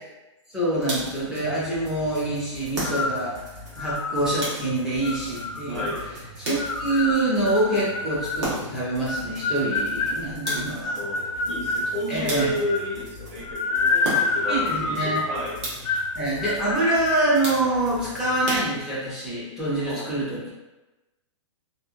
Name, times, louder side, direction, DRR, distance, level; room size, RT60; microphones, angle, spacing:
voice 1, 0.5-3.3 3.8-5.9 6.4-10.9 12.1-12.5 14.5-15.2 16.1-20.4, right 1 dB, 5° right, -9 dB, 0.3 m, -25 dB
sound 1, 0.8-1.3 2.7-3.4 4.4-5.0 6.4-7.0 8.4-8.9 10.4-11.0 12.3-12.8 14.0-14.6 15.6-16.1 17.4-17.9 18.4-19.2, right 1 dB, 60° right, 1.2 m, -33 dB
sound 2, 0.9-18.6, equal, 85° right, 1.3 m, -44 dB
sound 3, 2.8-3.2 3.8-4.4 5.0-6.0 6.6-8.5 9.1-11.9 12.4-12.9 13.4-15.4 15.8-16.1 16.4-16.8, left 3 dB, 75° left, 0.4 m, -27 dB
voice 2, 5.7-6.0 11.0-15.6 15.8-16.0 19.9-20.1, left 1 dB, 25° right, -7 dB, 0.8 m, -32 dB
2.7 x 2.4 x 2.5 m, 1.1 s
hypercardioid pair, 170°, 16 cm